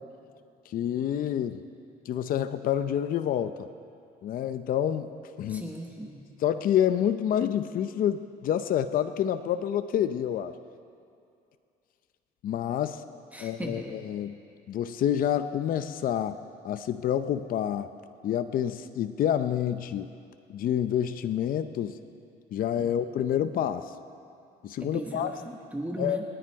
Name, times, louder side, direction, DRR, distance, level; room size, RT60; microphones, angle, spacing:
voice 1, 0.7-1.6 2.1-3.7 4.2-5.1 5.4-5.7 6.4-10.5 12.4-13.0 13.4-14.4 14.7-16.4 16.6-17.9 18.2-20.1 20.5-21.9 22.5-23.9 24.6-25.3 26.0-26.2, left 10 dB, 55° left, 10 dB, 0.7 m, -28 dB
voice 2, 5.5-6.2 13.3-14.0 22.8-22.9 24.8-26.2, right 1 dB, 10° right, 2 dB, 1.3 m, -37 dB
29.5 x 10.5 x 4.7 m, 2.5 s
cardioid pair, 110°, 17 cm